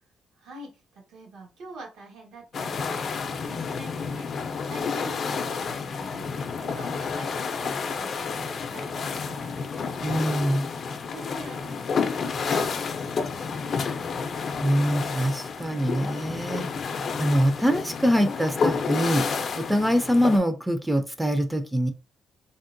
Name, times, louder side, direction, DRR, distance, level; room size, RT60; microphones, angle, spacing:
voice 1, 0.4-6.3 6.6-10.0 11.0-14.5, right 2 dB, 80° right, 1.1 m, -45 dB
sound 1, 2.5-20.4, left 5 dB, 55° left, 0.5 m, -30 dB
voice 2, 10.0-10.7 14.6-16.7 17.2-19.2 19.6-21.9, equal, 10° right, 0.4 m, -24 dB
3.6 x 2.1 x 2.5 m
cardioid pair, 90°, 0 cm